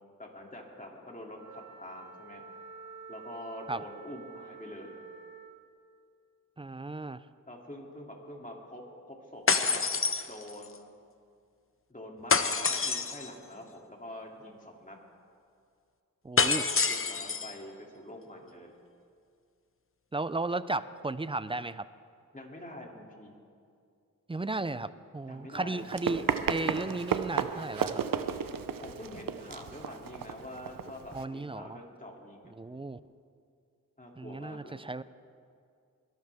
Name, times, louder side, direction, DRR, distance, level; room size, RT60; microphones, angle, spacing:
voice 1, 0.2-2.4 3.1-5.0 7.5-9.9 10.3-10.9 11.9-12.3 12.6-15.0 16.9-18.8 22.3-23.3 25.3-25.8 28.8-32.5 34.0-34.8, left 1 dB, 25° left, 0 dB, 2.8 m, -46 dB
Wind instrument woodwind instrument, 1.3-5.6, right 5 dB, 50° right, 2.0 m, -48 dB
voice 2, 6.6-7.2 16.2-16.7 20.1-21.9 24.3-28.0 31.1-31.8 32.6-33.0 34.2-35.0, right 2 dB, 15° right, 15 dB, 0.5 m, -34 dB
sound 1, 9.5-10.8 12.3-13.3 16.4-17.5, left 5 dB, 40° left, 0.8 m, -27 dB
Run, 25.8-31.2, right 7 dB, 70° right, 0.7 m, -33 dB
21.0 x 12.0 x 3.5 m, 2.3 s
cardioid pair, 45°, 34 cm